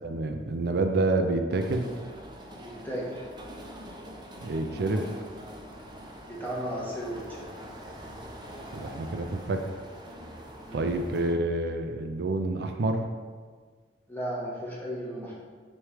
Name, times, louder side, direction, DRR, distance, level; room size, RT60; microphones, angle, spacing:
voice 1, 0.0-1.9 4.4-5.1 8.7-9.7 10.7-13.1, right 2 dB, 65° right, 5 dB, 0.4 m, -28 dB
sound 1, 1.5-11.3, equal, 25° right, 0.7 m, -44 dB
voice 2, 2.6-3.2 6.3-7.5 10.6-10.9 14.1-15.3, equal, 10° left, -6 dB, 1.4 m, -35 dB
6.4 x 3.2 x 4.8 m, 1.5 s
head